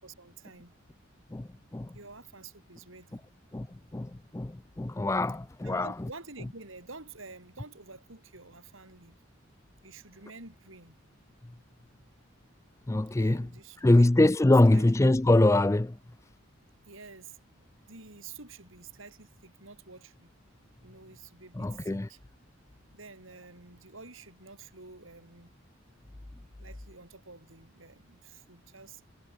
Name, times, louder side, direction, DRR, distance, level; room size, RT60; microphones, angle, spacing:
voice 1, 0.0-0.7 1.2-1.3 1.9-3.2 5.6-9.2 9.8-10.9 13.1-14.1 14.4-14.9 16.8-20.3 20.8-22.2 22.9-25.5 26.6-29.0, right 4 dB, 80° right, 5.2 m, -49 dB
voice 2, 1.3-1.9 3.5-3.7 3.9-5.9 12.9-13.5 13.8-16.0 21.6-22.1, left 2 dB, 15° left, 0.4 m, -24 dB
head